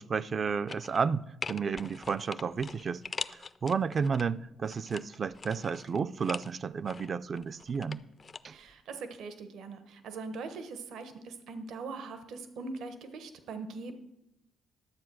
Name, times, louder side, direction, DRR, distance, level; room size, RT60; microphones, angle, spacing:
voice 1, 0.0-3.0 3.3-8.0 8.4-8.6, right 5 dB, 45° right, 0.4 m, -32 dB
sound 1, 0.7-1.1 1.4-4.2 4.7-6.5 6.9-8.4 8.7-8.8, left 4 dB, 35° left, 0.4 m, -42 dB
voice 2, 8.5-13.9, right 4 dB, 80° right, 1.0 m, -41 dB
11.5 x 7.3 x 6.1 m
cardioid pair, 90°, 0 cm